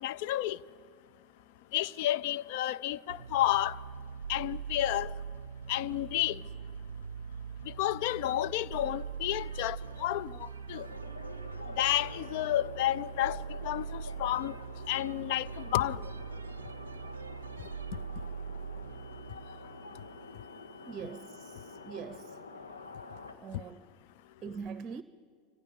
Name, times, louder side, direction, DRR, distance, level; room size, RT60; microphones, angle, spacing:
voice 1, 0.0-0.6 1.7-3.8 4.3-5.1 5.7-6.4 7.8-10.9 11.8-14.5 14.9-16.0, left 13 dB, 60° left, 0.5 m, -31 dB
sound 1, 3.1-20.4, right 6 dB, 85° right, 0.5 m, -42 dB
sound 2, 10.7-23.3, left 3 dB, 85° left, 1.8 m, -48 dB
voice 2, 20.9-22.4 23.4-23.8 24.4-25.0, right 6 dB, 35° right, 0.7 m, -42 dB
26.0 x 25.0 x 5.4 m
hypercardioid pair, 85°, 0 cm